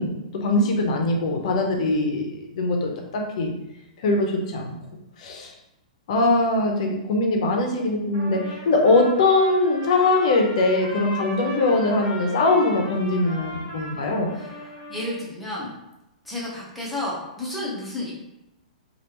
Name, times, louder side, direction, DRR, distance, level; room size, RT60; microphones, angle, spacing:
voice 1, 0.0-3.5 4.0-4.7 5.2-5.5 6.1-14.4, left 2 dB, 60° left, 2 dB, 0.6 m, -22 dB
Trumpet, 8.1-15.3, equal, 35° right, 0.9 m, -37 dB
voice 2, 14.9-15.7 16.2-18.1, left 1 dB, ahead, -7 dB, 1.0 m, -31 dB
3.3 x 2.4 x 2.9 m, 0.91 s
hypercardioid pair, 140°, 4 cm